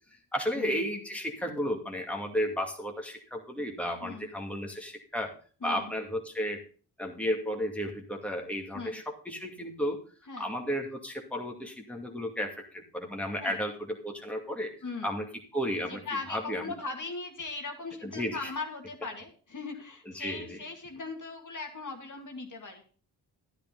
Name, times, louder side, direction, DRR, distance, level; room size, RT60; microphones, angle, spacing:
voice 1, 0.3-5.3 5.6-6.6 7.0-10.0 10.4-14.7 15.0-15.3 15.5-16.0 16.3-16.7 18.0-18.5 20.1-20.6, equal, 5° left, 1 dB, 2.3 m, -33 dB
voice 2, 5.6-5.9 8.7-8.9 10.3-10.5 13.4-13.6 14.8-15.2 15.8-22.8, left 3 dB, 45° left, 3 dB, 2.3 m, -39 dB
10.5 x 10.0 x 3.9 m, 0.40 s
cardioid pair, 55°, 41 cm